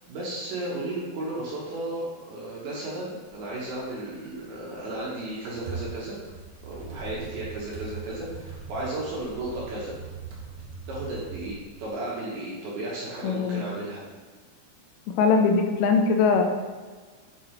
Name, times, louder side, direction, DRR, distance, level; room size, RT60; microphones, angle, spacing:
voice 1, 0.1-6.2 6.6-9.9 10.9-14.0, right 1 dB, 70° right, -6 dB, 2.6 m, -34 dB
sound 1, 3.3-3.4 3.6-4.1 4.6-11.9, right 5 dB, 85° right, 1.9 m, -40 dB
voice 2, 13.2-13.6 15.1-16.4, left 5 dB, 85° left, 4 dB, 3.1 m, -21 dB
7.7 x 3.7 x 4.5 m, 1.4 s
omnidirectional pair, 5.6 m